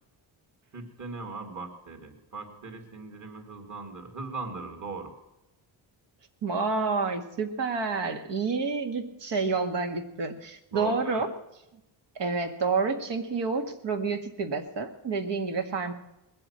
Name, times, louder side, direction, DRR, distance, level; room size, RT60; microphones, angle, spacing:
voice 1, 0.7-5.1 10.7-11.2, right 4 dB, 40° right, 4 dB, 3.2 m, -39 dB
voice 2, 6.4-11.3 12.2-15.9, right 4 dB, 60° right, 6 dB, 1.9 m, -29 dB
20.5 x 7.7 x 7.6 m, 0.93 s
cardioid pair, 110°, 47 cm